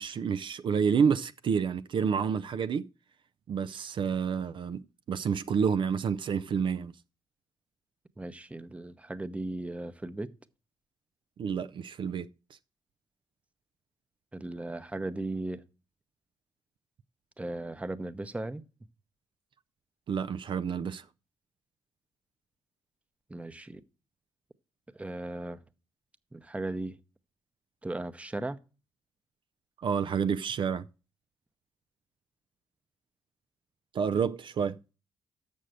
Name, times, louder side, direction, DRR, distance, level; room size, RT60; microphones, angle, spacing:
voice 1, 0.0-2.9 3.5-4.8 5.1-6.9 11.4-12.3 20.1-21.1 29.8-30.9 33.9-34.8, right 6 dB, 60° right, 0.4 m, -29 dB
voice 2, 8.2-10.3 14.3-15.6 17.4-18.6 23.3-23.8 24.9-25.6 26.3-27.0 27.8-28.6, right 2 dB, 15° right, 0.9 m, -36 dB
6.8 x 6.4 x 7.7 m
cardioid pair, 65°, 9 cm